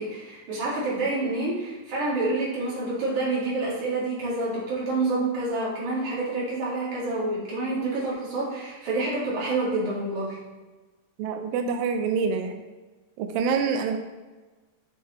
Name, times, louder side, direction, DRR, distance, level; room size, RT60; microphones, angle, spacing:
voice 1, 0.0-10.4, right 2 dB, 50° right, -7 dB, 3.5 m, -28 dB
voice 2, 11.2-12.6 13.2-14.0, right 5 dB, 90° right, 5 dB, 2.0 m, -26 dB
7.5 x 6.9 x 3.3 m, 1.2 s
omnidirectional pair, 4.8 m